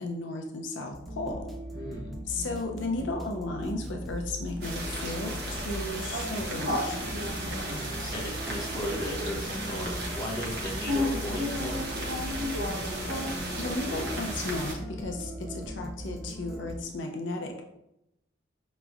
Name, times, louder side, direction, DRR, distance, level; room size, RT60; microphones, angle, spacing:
voice 1, 0.0-1.4 2.3-7.2 12.7-17.6, left 2 dB, 75° left, 2 dB, 0.5 m, -35 dB
sound 1, 0.9-16.7, equal, ahead, 0.4 m, -39 dB
voice 2, 1.7-2.1 7.7-12.0, equal, 20° left, -3 dB, 0.8 m, -37 dB
sound 2, 4.6-14.7, equal, 60° right, 0.9 m, -33 dB
5.0 x 3.0 x 2.3 m, 0.85 s
head